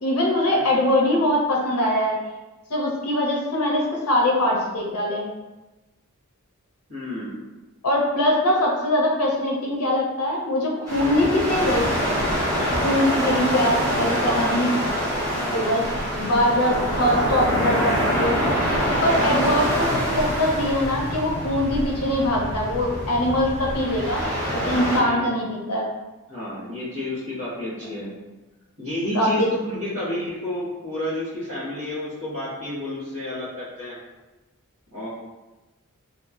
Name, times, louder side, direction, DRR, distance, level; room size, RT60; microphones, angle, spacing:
voice 1, 0.0-2.2 2.7-5.3 7.8-11.9 12.8-14.8 15.5-15.8 16.1-18.4 19.0-24.2 24.5-25.8 29.1-29.5, left 1 dB, 85° left, -2 dB, 0.7 m, -22 dB
voice 2, 6.9-7.4 11.0-11.4 12.6-12.9 15.3-15.7 19.2-19.5 24.9-25.3 26.3-28.1 28.8-34.0 34.9-35.1, left 1 dB, 85° right, -11 dB, 1.1 m, -30 dB
sound 1, 10.9-25.0, equal, 15° right, 0.8 m, -25 dB
3.1 x 2.0 x 2.4 m, 1.1 s
head